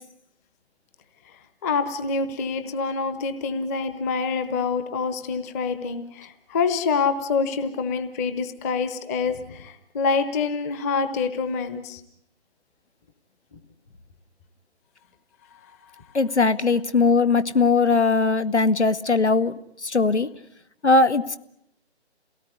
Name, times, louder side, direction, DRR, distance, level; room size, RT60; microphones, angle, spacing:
voice 1, 1.6-12.0 15.5-16.1, left 5 dB, 15° left, 10 dB, 1.0 m, -26 dB
voice 2, 16.1-20.3 20.8-21.4, left 3 dB, 85° left, 14 dB, 1.5 m, -20 dB
28.0 x 18.0 x 9.6 m, 0.76 s
figure-of-eight pair, 150°, 33 cm